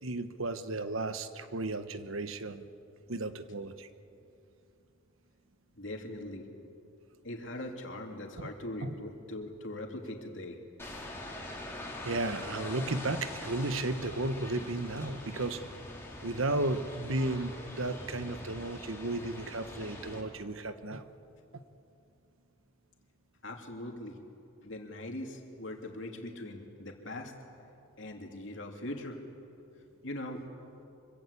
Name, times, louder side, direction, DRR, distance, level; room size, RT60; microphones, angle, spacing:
voice 1, 0.0-2.7 3.1-3.9 8.8-8.9 12.0-15.7 16.2-21.1 21.5-21.6, right 2 dB, 70° right, 10 dB, 1.2 m, -34 dB
voice 2, 5.7-6.5 7.2-10.6 23.4-24.2 24.6-27.3 28.0-29.2 30.0-30.4, left 1 dB, 60° left, 2 dB, 3.1 m, -41 dB
sound 1, 10.8-20.2, left 1 dB, 10° left, 4.0 m, -43 dB
25.0 x 24.5 x 8.5 m, 2.8 s
head